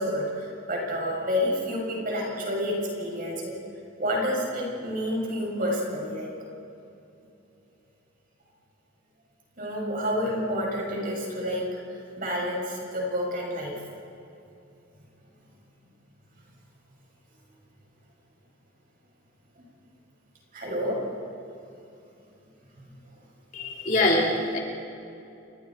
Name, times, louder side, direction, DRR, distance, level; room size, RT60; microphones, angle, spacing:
voice 1, 0.0-3.5 4.0-6.3 9.6-11.6 11.9-13.7 20.5-21.0 22.8-22.9, equal, 45° right, -2 dB, 6.8 m, -29 dB
voice 2, 23.5-24.6, left 2 dB, 40° left, -2 dB, 3.3 m, -24 dB
29.5 x 24.0 x 4.5 m, 2.8 s
head